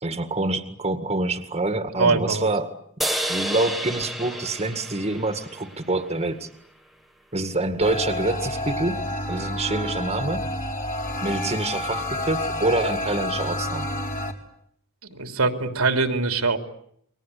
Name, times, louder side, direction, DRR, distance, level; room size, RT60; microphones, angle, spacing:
voice 1, 0.0-2.7 3.0-6.5 7.3-9.0 9.3-10.4 11.2-13.9, right 2 dB, 30° right, 7 dB, 2.0 m, -26 dB
voice 2, 2.0-2.5 15.0-16.6, right 3 dB, 90° right, 5 dB, 3.3 m, -22 dB
sound 1, 3.0-6.5, right 1 dB, ahead, 1.7 m, -31 dB
sound 2, 7.8-14.3, left 1 dB, 40° left, 4.1 m, -29 dB
29.5 x 23.0 x 8.5 m, 0.68 s
head